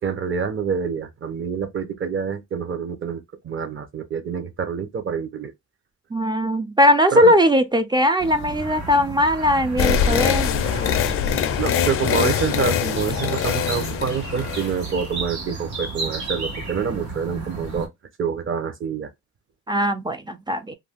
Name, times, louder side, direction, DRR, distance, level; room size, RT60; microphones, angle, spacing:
voice 1, 0.0-5.5 7.1-7.3 11.6-17.9 18.2-19.1, right 6 dB, 40° right, 0.8 m, -27 dB
voice 2, 6.1-10.5 19.7-20.7, equal, 15° right, 0.4 m, -19 dB
sound 1, 8.2-17.9, right 3 dB, 70° right, 1.2 m, -33 dB
sound 2, 9.8-15.0, left 8 dB, 45° left, 0.4 m, -23 dB
2.5 x 2.3 x 3.4 m
cardioid pair, 90°, 30 cm